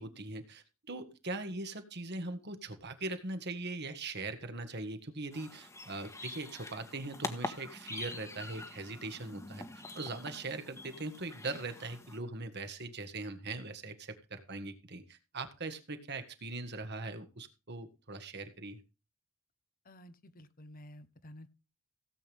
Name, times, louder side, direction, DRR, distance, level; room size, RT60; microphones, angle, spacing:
voice 1, 0.0-9.6 9.9-18.8, right 2 dB, 50° right, 8 dB, 1.8 m, -41 dB
sound 1, 5.3-12.2, left 2 dB, 15° left, 1.5 m, -45 dB
voice 2, 19.8-21.5, left 1 dB, 40° left, 13 dB, 1.0 m, -52 dB
17.0 x 8.2 x 3.6 m, 0.30 s
head